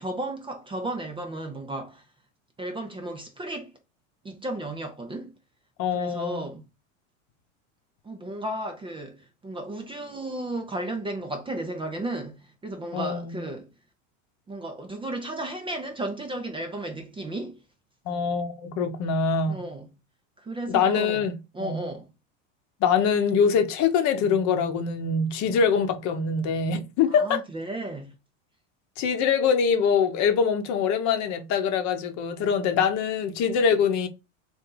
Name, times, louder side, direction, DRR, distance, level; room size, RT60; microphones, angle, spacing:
voice 1, 0.0-2.0 2.6-3.7 4.2-5.4 5.9-6.7 8.0-13.7 14.5-17.6 19.5-19.9 20.4-21.3 21.5-22.1 27.1-28.1, right 1 dB, 15° right, 0.6 m, -34 dB
voice 2, 5.8-6.4 12.9-13.4 18.1-19.6 20.7-21.8 22.8-27.4 29.0-34.1, left 6 dB, 50° left, 0.9 m, -24 dB
3.3 x 2.7 x 3.9 m
supercardioid pair, 115°, 38 cm